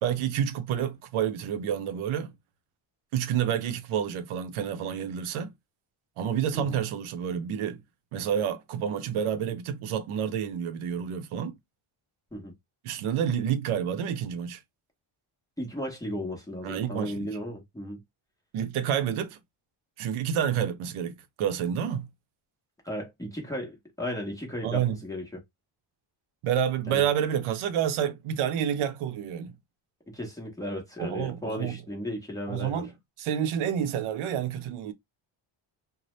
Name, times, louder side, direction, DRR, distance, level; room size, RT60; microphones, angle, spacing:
voice 1, 0.0-2.3 3.1-5.5 6.2-7.8 8.1-11.5 12.8-14.6 16.6-17.3 18.5-19.4 20.0-22.1 24.6-25.0 26.4-29.5 31.0-31.8 32.5-32.9 33.2-34.9, right 9 dB, 85° right, 0.6 m, -29 dB
voice 2, 15.6-18.0 22.8-25.2 26.9-27.0 30.1-32.8, equal, 5° left, 0.7 m, -35 dB
2.7 x 2.0 x 3.0 m
cardioid pair, 175°, 48 cm